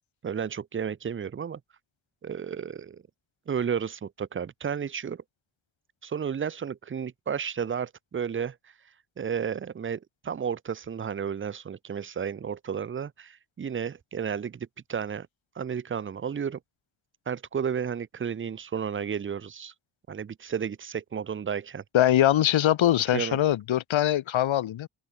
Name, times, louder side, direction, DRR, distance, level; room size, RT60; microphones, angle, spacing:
voice 1, 0.2-1.6 2.2-3.0 3.5-5.2 6.0-8.6 9.2-15.3 15.6-16.6 17.3-19.7 20.1-21.8 23.1-23.4, right 7 dB, 30° right, 0.4 m, -32 dB
voice 2, 21.9-24.9, left 12 dB, 75° left, 0.7 m, -22 dB
open air
cardioid pair, 60°, 47 cm